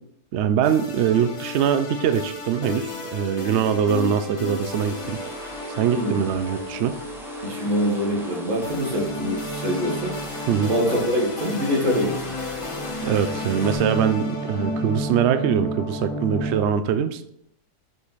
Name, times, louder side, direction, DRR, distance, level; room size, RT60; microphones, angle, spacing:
voice 1, 0.3-5.2 5.7-7.0 10.5-10.7 13.0-17.2, right 8 dB, 85° right, 10 dB, 0.6 m, -23 dB
sound 1, 0.6-16.6, left 1 dB, 45° left, 0.4 m, -32 dB
sound 2, 4.4-13.8, equal, ahead, 1.0 m, -40 dB
voice 2, 7.4-10.2 10.7-12.3, equal, 50° right, -3 dB, 2.1 m, -24 dB
5.9 x 5.0 x 4.0 m, 0.73 s
omnidirectional pair, 1.7 m